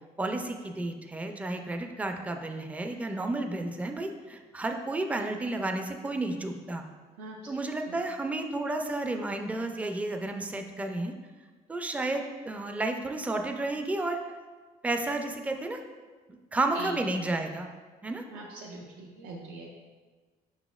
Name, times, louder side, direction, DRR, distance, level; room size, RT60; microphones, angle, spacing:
voice 1, 0.2-6.8 7.5-11.1 11.7-14.2 14.8-15.8 16.3-17.7 18.0-18.2, right 2 dB, 10° right, 5 dB, 0.3 m, -32 dB
voice 2, 18.3-19.7, right 2 dB, 85° right, -2 dB, 0.5 m, -42 dB
5.4 x 4.0 x 2.3 m, 1.4 s
cardioid pair, 110°, 17 cm